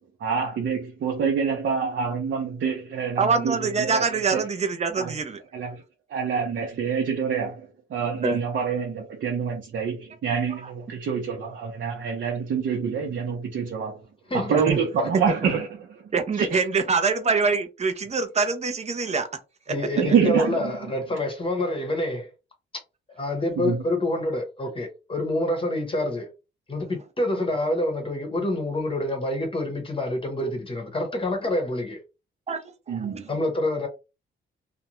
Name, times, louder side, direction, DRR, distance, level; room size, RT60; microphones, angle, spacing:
voice 1, 0.2-4.0 4.3-4.4 5.0-5.1 5.5-5.7 6.1-7.5 7.9-13.9 14.5-15.7 16.4-16.6 20.0-20.7 23.6-23.8 32.9-33.2, right 6 dB, 65° right, 0.7 m, -26 dB
voice 2, 3.2-5.4 8.2-8.4 10.6-10.7 14.7-14.8 15.4-15.5 16.1-19.3 19.7-19.8 32.5-32.6 32.9-33.2, right 4 dB, 35° right, 0.5 m, -24 dB
voice 3, 19.7-22.3 23.2-26.3 26.7-32.0 33.3-33.9, left 1 dB, 25° left, 0.8 m, -27 dB
2.5 x 2.2 x 2.9 m
wide cardioid pair, 130°, 21 cm